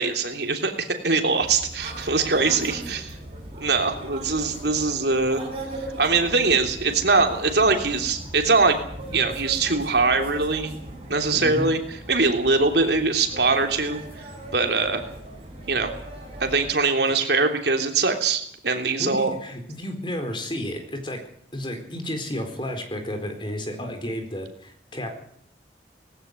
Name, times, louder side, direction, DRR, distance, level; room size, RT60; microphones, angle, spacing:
voice 1, 0.0-3.1 3.6-5.4 6.0-8.8 9.1-10.8 11.1-14.0 14.5-15.0 15.7-15.9 16.4-19.3, right 3 dB, 70° right, 5 dB, 3.2 m, -22 dB
sound 1, 1.4-16.7, right 1 dB, 30° right, 7.7 m, -38 dB
voice 2, 11.3-11.7 19.0-21.2 21.5-25.1, left 1 dB, 25° left, 5 dB, 4.2 m, -32 dB
19.5 x 16.5 x 9.4 m, 0.63 s
head